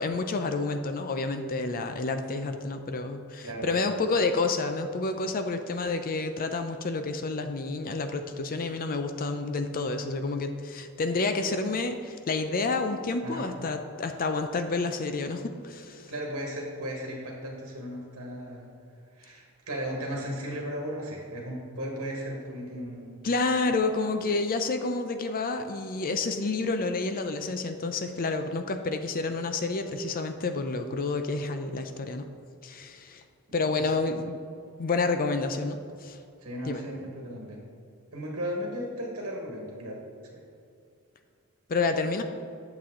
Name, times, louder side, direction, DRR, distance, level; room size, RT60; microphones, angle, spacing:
voice 1, 0.0-16.1 23.2-32.3 32.6-33.2 33.5-34.4 34.8-36.2 36.7-36.8 41.7-42.2, left 3 dB, 40° left, 7 dB, 0.5 m, -29 dB
voice 2, 3.4-3.9 13.2-13.5 16.1-18.7 19.1-23.2 33.7-34.0 36.4-37.6 38.1-40.0 40.3-40.4, equal, 60° right, -1 dB, 1.5 m, -36 dB
8.4 x 6.9 x 3.7 m, 2.4 s
head